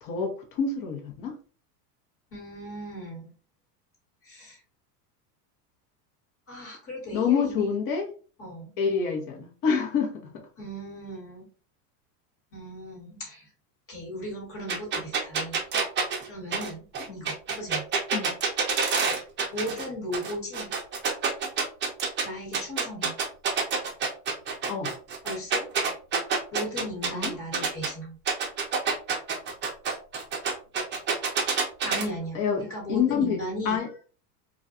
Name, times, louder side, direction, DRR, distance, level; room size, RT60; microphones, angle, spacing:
voice 1, 0.0-1.3 7.1-8.1 8.8-10.1 17.1-17.3 18.1-18.3 24.7-24.9 27.1-27.3 32.3-32.6 32.9-33.4 33.6-33.9, left 6 dB, 45° left, 2 dB, 0.9 m, -27 dB
voice 2, 2.3-3.3 4.2-4.6 6.5-7.7 8.4-8.7 10.6-11.4 12.5-13.5 13.9-15.6 16.3-16.8 17.1-17.8 19.5-20.7 22.2-23.1 25.2-25.6 26.5-28.1 31.8-33.8, equal, 30° left, -1 dB, 1.4 m, -36 dB
sound 1, 14.7-19.9 20.1-22.2 22.5-27.9 28.3-32.0, right 5 dB, 25° right, 0.5 m, -27 dB
2.4 x 2.2 x 2.5 m, 0.38 s
supercardioid pair, 120°, 48 cm